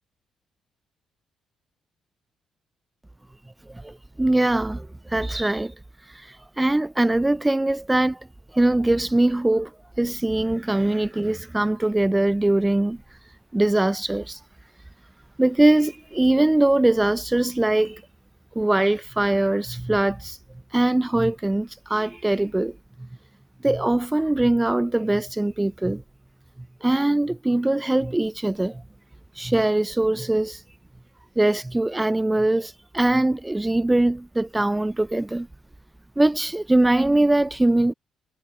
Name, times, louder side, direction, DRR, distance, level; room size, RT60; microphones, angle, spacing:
voice 1, 3.7-5.7 6.6-8.2 8.5-9.7 10.0-13.0 13.5-14.4 15.4-18.0 18.6-20.4 20.7-23.1 23.6-26.0 26.8-28.8 29.4-30.6 31.4-35.5 36.2-37.9, right 1 dB, 10° right, 0.3 m, -22 dB
cardioid pair, 90°, 0 cm